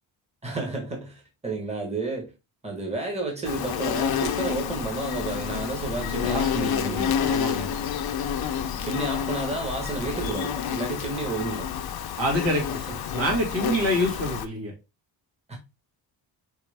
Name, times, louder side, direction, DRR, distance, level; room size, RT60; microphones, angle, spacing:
voice 1, 0.4-2.3 2.6-7.3 8.8-11.7 12.9-13.2 15.5-15.6, right 3 dB, 15° right, 1.3 m, -31 dB
Insect, 3.4-14.5, left 9 dB, 55° left, 0.6 m, -29 dB
sound 1, 3.8-10.3, left 4 dB, 5° left, 0.6 m, -40 dB
voice 2, 5.9-7.7 12.2-12.7 13.0-14.7, equal, 70° right, 2.2 m, -27 dB
4.9 x 3.1 x 3.3 m
wide cardioid pair, 125°, 46 cm